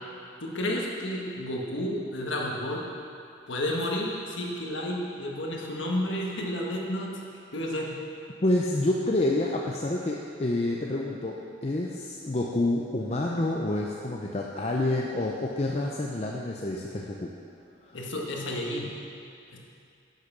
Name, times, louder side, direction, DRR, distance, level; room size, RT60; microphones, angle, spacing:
voice 1, 0.4-2.8 3.5-7.2 7.5-8.0 17.9-18.9 19.5-19.6, left 1 dB, 80° left, -2 dB, 1.5 m, -31 dB
voice 2, 8.4-17.3 17.9-18.0, left 2 dB, 35° left, -2 dB, 0.6 m, -28 dB
10.5 x 6.6 x 6.0 m, 2.5 s
head